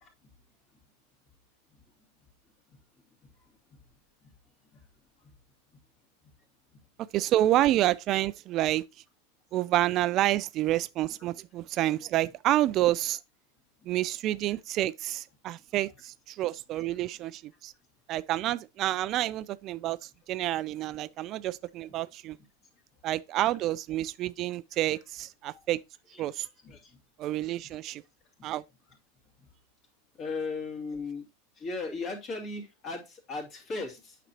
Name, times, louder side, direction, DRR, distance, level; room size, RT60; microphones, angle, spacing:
voice 1, 7.1-8.8 9.5-13.2 13.9-17.7 18.1-22.4 23.0-25.8 26.2-26.5 27.2-28.0 28.4-28.6, right 14 dB, 40° right, 0.3 m, -28 dB
voice 2, 30.2-31.2 31.6-34.2, left 3 dB, 35° left, 2.4 m, -36 dB
9.1 x 5.9 x 2.8 m
figure-of-eight pair, 85°, 0 cm